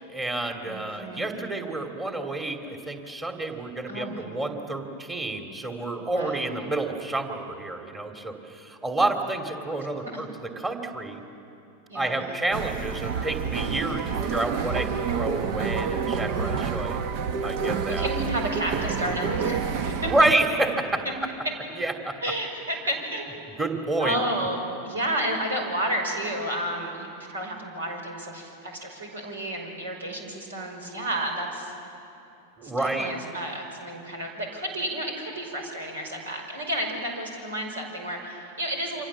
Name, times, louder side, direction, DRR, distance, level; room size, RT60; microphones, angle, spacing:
voice 1, 0.1-10.3 10.6-11.2 11.9-14.0 14.3-17.0 17.4-18.1 20.1-20.8 21.8-22.1 23.6-24.2 32.6-33.1, right 2 dB, 15° right, 4 dB, 2.8 m, -29 dB
voice 2, 0.6-1.4 3.9-4.2 6.0-6.6 11.9-12.3 17.6-20.1 22.2-23.3 24.0-31.7 32.6-39.1, right 1 dB, 70° right, 2 dB, 5.5 m, -31 dB
sound 1, 12.5-20.4, right 6 dB, 45° right, 1.2 m, -28 dB
28.5 x 25.5 x 7.4 m, 2.8 s
figure-of-eight pair, 90°, 0 cm